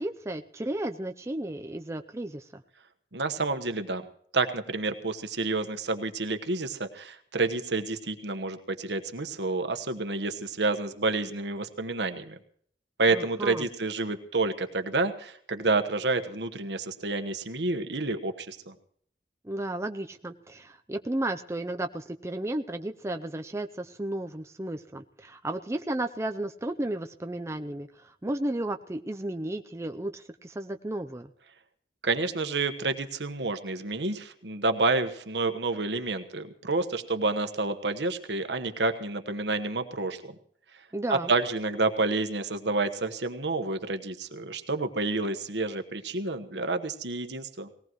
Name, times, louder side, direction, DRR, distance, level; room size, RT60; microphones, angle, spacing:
voice 1, 0.0-2.6 13.1-13.7 19.4-31.3 40.9-41.3, right 1 dB, 15° right, 6 dB, 0.5 m, -33 dB
voice 2, 3.1-4.0 4.3-12.4 13.0-18.7 32.0-40.4 41.1-47.7, right 3 dB, 75° right, 8 dB, 1.3 m, -29 dB
19.5 x 18.0 x 3.1 m, 0.62 s
head